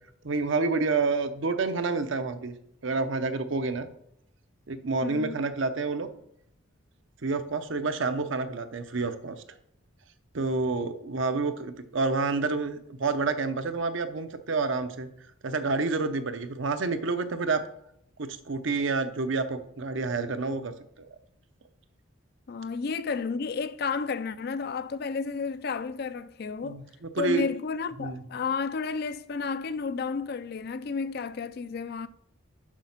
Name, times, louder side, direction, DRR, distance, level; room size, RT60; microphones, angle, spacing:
voice 1, 0.2-2.5 2.8-3.9 4.7-6.1 7.2-9.4 10.3-15.1 15.4-17.6 18.2-21.1 26.6-26.8 27.1-27.5 28.0-28.2, right 3 dB, 65° right, 0.7 m, -28 dB
voice 2, 5.0-5.4 22.5-26.8 27.2-32.1, left 5 dB, 50° left, 0.4 m, -32 dB
7.4 x 5.8 x 5.7 m
head